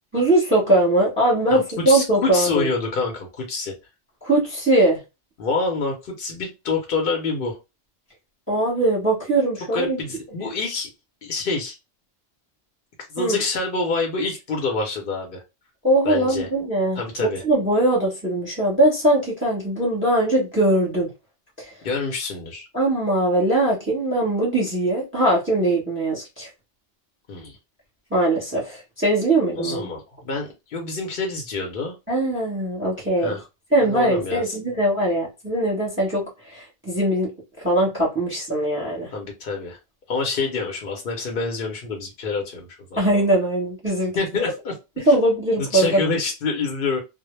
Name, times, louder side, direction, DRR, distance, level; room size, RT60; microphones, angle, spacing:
voice 1, 0.1-2.7 4.2-5.0 8.5-10.0 13.2-13.4 15.8-21.1 21.6-21.7 22.7-26.5 28.1-29.8 32.1-33.4 33.7-37.3 37.6-39.1 43.0-44.1 45.1-46.0, right 1 dB, 10° right, 0.8 m, -21 dB
voice 2, 1.5-3.7 5.4-7.6 9.7-10.9 11.2-11.8 13.1-15.4 16.0-16.5 17.0-17.4 21.8-22.7 27.3-27.6 29.6-31.9 33.2-33.4 33.8-34.6 39.1-39.8 40.1-43.0 44.1-44.7 45.0-45.1 45.6-47.0, left 4 dB, 55° left, 0.7 m, -27 dB
2.1 x 2.0 x 3.0 m
omnidirectional pair, 1.2 m